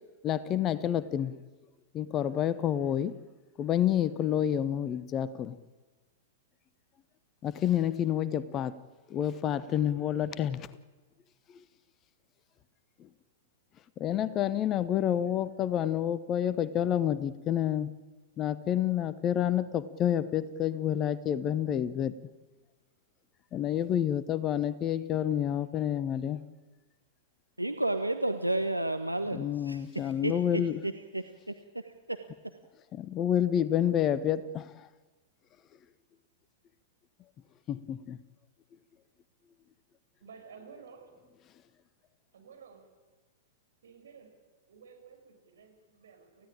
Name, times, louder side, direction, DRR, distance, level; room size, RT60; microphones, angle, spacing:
voice 1, 0.2-1.4 1.9-3.1 3.6-5.6 7.4-8.8 9.1-10.7 14.0-17.9 18.4-22.1 23.5-26.4 29.3-30.8 32.9-34.7 37.7-38.2, left 10 dB, 30° left, 0.9 m, -29 dB
voice 2, 27.6-32.2, right 1 dB, 85° right, 1.0 m, -32 dB
voice 3, 40.2-41.1 42.3-42.8 43.8-44.3 44.7-46.5, right 6 dB, 60° right, 6.0 m, -52 dB
28.5 x 16.0 x 8.9 m
figure-of-eight pair, 100°, 0 cm